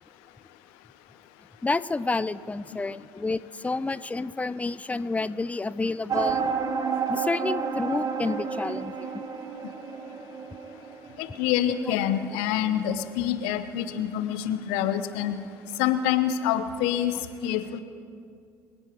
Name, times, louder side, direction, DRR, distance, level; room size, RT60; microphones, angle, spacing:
voice 1, 1.6-6.5 7.1-9.1, left 3 dB, 15° left, 16 dB, 0.5 m, -29 dB
sound 1, 6.1-11.6, right 6 dB, 40° right, 1.1 m, -30 dB
voice 2, 11.2-15.3 15.8-17.8, left 10 dB, 70° left, 11 dB, 0.8 m, -26 dB
24.5 x 9.9 x 4.6 m, 2.4 s
figure-of-eight pair, 50°, 9 cm